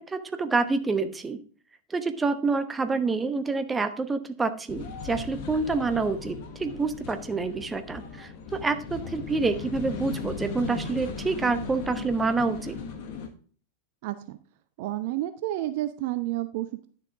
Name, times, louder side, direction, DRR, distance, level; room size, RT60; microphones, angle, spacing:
voice 1, 0.0-1.4 1.9-12.8, right 4 dB, 15° right, 10 dB, 0.9 m, -27 dB
sound 1, 4.7-13.3, left 5 dB, 50° left, 1.2 m, -38 dB
voice 2, 14.0-14.4 14.8-16.9, right 15 dB, 50° right, 12 dB, 0.5 m, -30 dB
10.5 x 6.7 x 3.5 m, 0.43 s
figure-of-eight pair, 90°, 0 cm